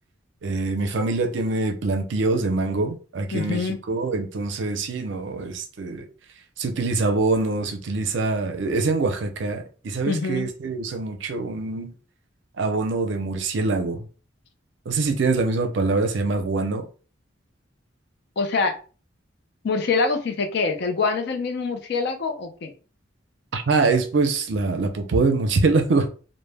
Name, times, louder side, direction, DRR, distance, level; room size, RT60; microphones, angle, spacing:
voice 1, 0.4-6.0 6.6-11.9 12.6-14.0 14.9-16.9 23.5-26.1, right 3 dB, 65° right, 0.5 m, -24 dB
voice 2, 3.3-3.8 10.1-10.5 18.4-18.8 19.6-22.7, left 4 dB, 55° left, 0.4 m, -25 dB
2.1 x 2.0 x 3.2 m
head